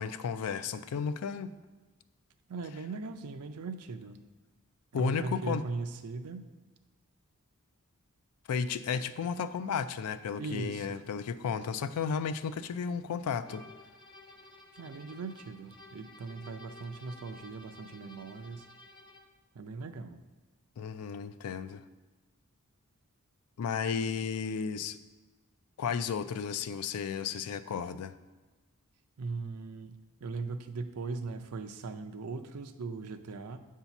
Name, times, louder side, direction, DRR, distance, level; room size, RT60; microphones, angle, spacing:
voice 1, 0.0-1.5 4.9-5.6 8.5-13.6 20.8-21.8 23.6-25.0 25.8-28.1, left 6 dB, 85° left, 12 dB, 0.4 m, -33 dB
voice 2, 2.5-4.2 4.9-6.4 10.4-11.1 14.8-18.7 19.5-20.2 29.2-33.6, right 3 dB, 85° right, 8 dB, 0.5 m, -39 dB
sound 1, 13.4-19.4, left 2 dB, 20° left, 0.6 m, -53 dB
8.0 x 2.8 x 5.8 m, 1.2 s
head